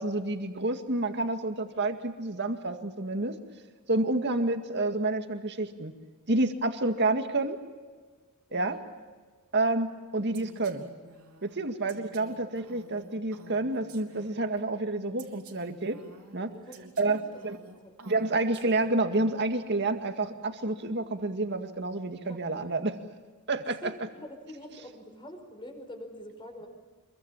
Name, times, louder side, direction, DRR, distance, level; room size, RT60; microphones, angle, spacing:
voice 1, 0.0-3.4 3.9-5.9 6.3-7.6 8.5-8.8 9.5-10.8 11.4-16.0 16.3-16.5 17.0-17.6 18.1-23.0 23.5-23.8, right 2 dB, 50° right, 6 dB, 2.1 m, -29 dB
voice 2, 8.5-8.9 16.5-17.4 17.8-18.2 22.2-22.4 23.6-26.7, equal, 20° left, 5 dB, 5.2 m, -46 dB
Female speech woman speaking, 10.3-14.6 15.2-19.2, right 3 dB, 75° right, 3.5 m, -51 dB
27.0 x 23.0 x 7.2 m, 1.4 s
head